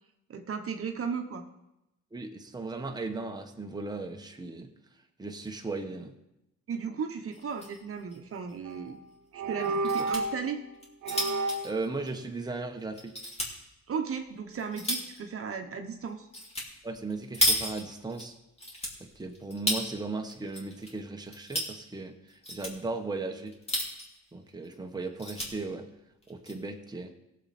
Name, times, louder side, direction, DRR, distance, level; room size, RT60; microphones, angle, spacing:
voice 1, 0.3-1.4 6.7-9.0 9.3-10.6 13.9-16.3, right 6 dB, 45° right, 5 dB, 1.1 m, -35 dB
voice 2, 2.1-4.7 5.2-6.1 11.6-13.2 16.8-18.3 19.0-23.5 24.3-25.9 26.3-27.1, right 3 dB, 15° right, 3 dB, 1.3 m, -37 dB
sound 1, 7.3-7.8 8.1-8.2 8.5-8.6 9.6-10.2 10.7-12.6 13.0-13.5 14.1-15.2 16.3-16.7 16.9-18.2 18.6-19.9 20.3-20.9 21.2-21.7 22.3-22.7 23.5-24.2 24.6-24.7 25.0-25.5 26.2-26.5, equal, 20° left, 3.1 m, -32 dB
sound 2, 8.7-8.9 9.4-10.5 11.0-11.8, right 2 dB, 80° right, 0.9 m, -31 dB
17.0 x 7.5 x 4.3 m, 0.90 s
cardioid pair, 90°, 30 cm